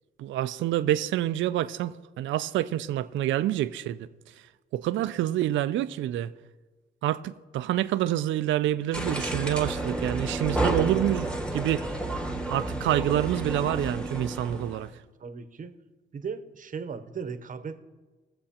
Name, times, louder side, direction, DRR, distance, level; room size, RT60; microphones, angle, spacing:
voice 1, 0.2-4.1 4.7-6.3 7.0-11.9 12.5-14.9, right 13 dB, 70° right, 0.4 m, -27 dB
sound 1, 8.9-14.9, right 2 dB, 5° left, 1.2 m, -31 dB
voice 2, 15.2-15.7 16.1-17.8, right 6 dB, 40° right, 0.9 m, -37 dB
20.5 x 7.6 x 2.9 m
cardioid pair, 90°, 20 cm